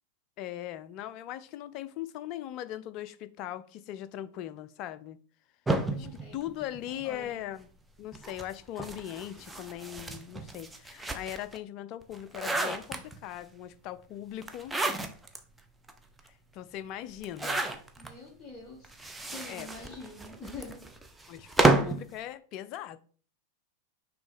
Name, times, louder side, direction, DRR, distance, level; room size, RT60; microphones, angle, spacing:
voice 1, 0.4-5.2 5.9-7.7 8.0-14.7 16.5-17.6 19.5-19.7 21.3-23.0, left 12 dB, 40° left, 0.4 m, -40 dB
sound 1, 5.7-7.3 8.1-11.6 12.0-13.4 14.4-15.4 15.9-16.0 16.2-16.3 17.2-18.1 18.8-22.1, right 2 dB, 5° right, 0.7 m, -31 dB
voice 2, 5.9-6.5 7.0-7.4 18.0-20.8, left 3 dB, 20° left, 1.4 m, -46 dB
6.1 x 3.2 x 5.1 m
figure-of-eight pair, 90°, 0 cm